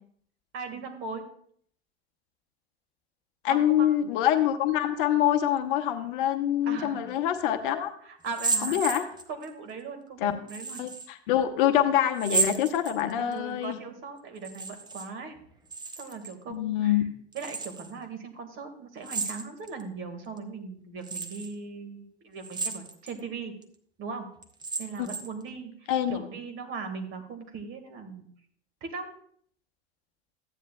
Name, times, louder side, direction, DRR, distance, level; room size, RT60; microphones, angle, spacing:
voice 1, 0.5-1.2 3.5-3.9 6.6-7.1 7.7-10.8 13.2-15.4 15.9-17.0 17.3-23.5 24.0-24.3 24.8-28.3 28.8-29.1, right 4 dB, 40° right, 5 dB, 1.8 m, -39 dB
voice 2, 3.4-7.9 8.6-9.1 10.2-10.3 10.8-13.8 16.5-17.0 25.9-26.2, left 11 dB, 50° left, 8 dB, 0.9 m, -25 dB
sound 1, 8.2-9.5 10.5-11.1 12.2-13.3 14.4-15.1 15.4-16.3 17.3-17.9 19.0-19.8 20.4-20.5 21.0-21.5 22.4-23.2 23.6-23.7 24.4-25.4, right 4 dB, 15° right, 0.8 m, -32 dB
14.0 x 9.2 x 2.3 m, 0.62 s
figure-of-eight pair, 85°, 33 cm